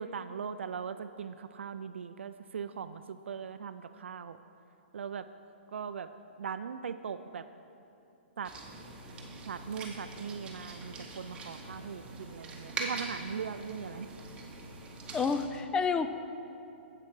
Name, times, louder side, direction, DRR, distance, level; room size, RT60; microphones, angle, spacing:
voice 1, 0.0-4.4 4.9-5.2 5.7-6.1 6.4-7.4 8.4-8.5 9.5-14.1, right 6 dB, 80° right, 10 dB, 0.3 m, -39 dB
sound 1, 8.4-15.5, right 3 dB, 15° right, 1.0 m, -43 dB
voice 2, 15.1-16.1, left 5 dB, 10° left, 9 dB, 0.3 m, -29 dB
7.7 x 7.4 x 5.7 m, 2.8 s
hypercardioid pair, 140°, 6 cm